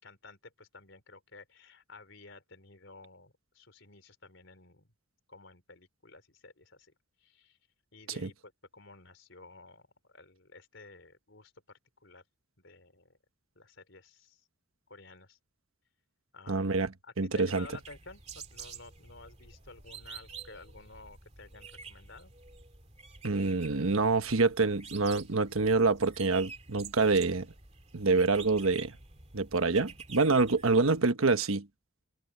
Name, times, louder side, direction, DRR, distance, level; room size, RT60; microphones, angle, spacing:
voice 1, 0.0-4.9 5.3-6.9 7.2-7.6 7.9-12.2 12.6-13.2 13.6-14.5 14.9-15.4 16.3-16.8 17.0-22.3, left 3 dB, 65° left, 4.2 m, -53 dB
voice 2, 16.5-16.9 17.2-17.7 23.2-27.5 27.9-28.9 29.3-31.7, right 3 dB, 80° right, 1.2 m, -26 dB
sound 1, 17.5-31.0, right 5 dB, 30° right, 2.6 m, -49 dB
head